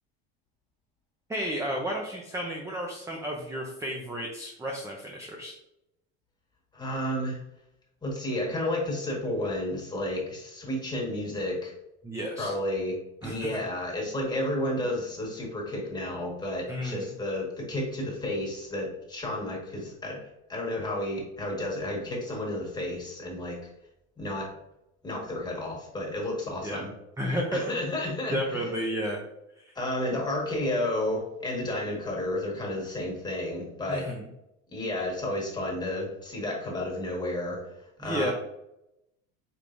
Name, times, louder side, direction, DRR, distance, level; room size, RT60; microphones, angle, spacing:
voice 1, 1.3-5.5 12.0-12.5 13.2-13.5 16.7-17.1 26.6-26.8 27.2-27.7 28.3-29.2 29.7-29.8 33.9-34.3 38.0-38.3, equal, 10° right, 0 dB, 0.6 m, -32 dB
voice 2, 6.7-7.4 8.0-11.7 12.4-13.0 13.2-20.2 20.5-23.6 24.2-24.5 25.0-26.9 27.3-28.6 29.7-34.1 34.7-37.7 38.0-38.3, left 1 dB, 10° left, -3 dB, 1.5 m, -31 dB
4.5 x 3.5 x 2.6 m, 0.86 s
supercardioid pair, 115°, 33 cm